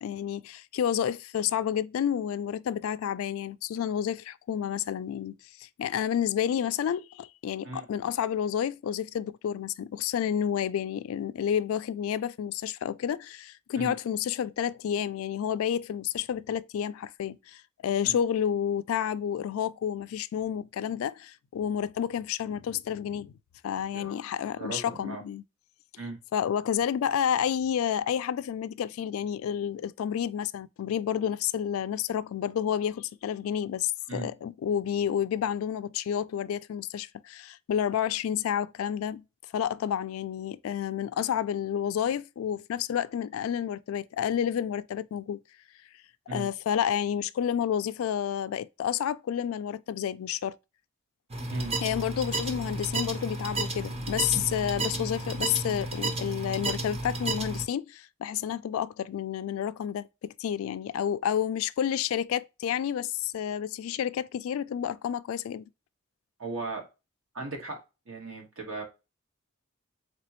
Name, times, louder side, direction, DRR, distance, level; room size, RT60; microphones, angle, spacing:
voice 1, 0.0-23.3 23.6-25.4 26.3-39.2 39.5-45.4 46.3-50.6 51.8-65.6, left 9 dB, 85° left, 0.3 m, -30 dB
voice 2, 24.6-25.2 26.0-26.2 34.1-34.3 46.3-46.5 51.5-51.7 66.4-66.9 67.3-67.8 68.1-68.8, right 3 dB, 75° right, 1.5 m, -36 dB
sound 1, 51.3-57.6, right 2 dB, 30° right, 0.7 m, -32 dB
4.0 x 3.3 x 2.9 m
head